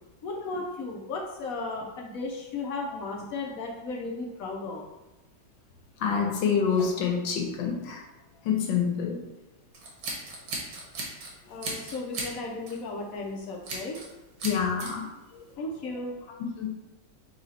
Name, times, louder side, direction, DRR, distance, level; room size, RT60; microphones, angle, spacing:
voice 1, 0.2-4.8 11.5-14.0 15.6-16.1, left 3 dB, 65° left, 0 dB, 0.9 m, -35 dB
voice 2, 6.0-8.0 8.4-9.2 14.4-15.0 15.3-15.4 16.6-16.7, left 6 dB, 85° left, 1 dB, 1.5 m, -27 dB
Scissors, 9.7-11.3 11.6-12.3 12.7-12.9 13.6-14.1 14.4-14.9, right 2 dB, 70° right, 1.6 m, -35 dB
4.2 x 2.8 x 4.1 m, 1.0 s
omnidirectional pair, 2.0 m